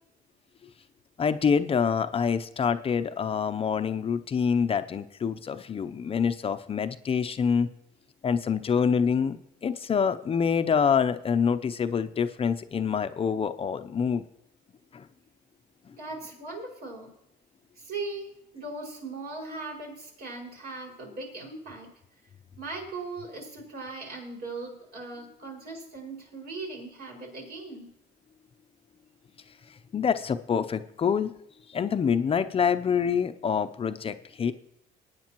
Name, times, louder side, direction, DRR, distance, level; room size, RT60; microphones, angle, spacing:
voice 1, 1.2-7.7 8.2-14.3 14.9-15.1 15.9-16.0 29.9-31.3 31.7-34.5, left 6 dB, 35° left, 10 dB, 0.6 m, -26 dB
voice 2, 16.0-17.1 17.7-18.3 18.5-21.9 22.6-27.9, right 3 dB, 65° right, -2 dB, 5.7 m, -39 dB
21.0 x 9.6 x 3.0 m, 0.79 s
cardioid pair, 110°, 17 cm